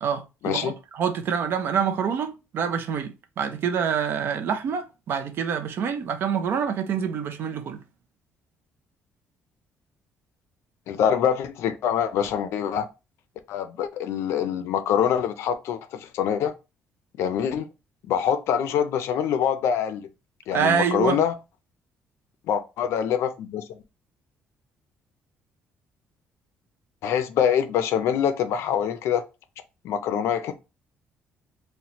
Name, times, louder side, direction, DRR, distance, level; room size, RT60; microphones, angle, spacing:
voice 1, 0.0-7.8 20.5-21.2, right 7 dB, 55° right, 0.5 m, -26 dB
voice 2, 10.9-12.9 13.5-16.5 17.2-17.7 18.1-20.1 20.5-21.4 22.5-23.8 27.0-29.2 29.8-30.5, left 8 dB, 75° left, 0.5 m, -25 dB
4.1 x 2.1 x 2.9 m
cardioid pair, 150°, 5 cm